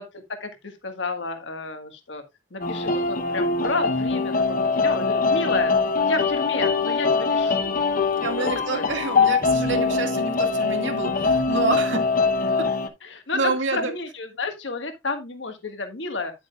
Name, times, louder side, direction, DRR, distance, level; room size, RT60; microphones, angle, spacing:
voice 1, 0.0-2.2 2.5-5.7 6.0-7.8 8.3-8.9 13.0-16.3, left 3 dB, 75° left, 1.6 m, -31 dB
sound 1, 2.6-12.9, left 4 dB, 45° left, 1.0 m, -23 dB
voice 2, 8.2-12.0 13.3-13.9, right 3 dB, 90° right, 2.1 m, -27 dB
10.0 x 7.9 x 2.4 m
head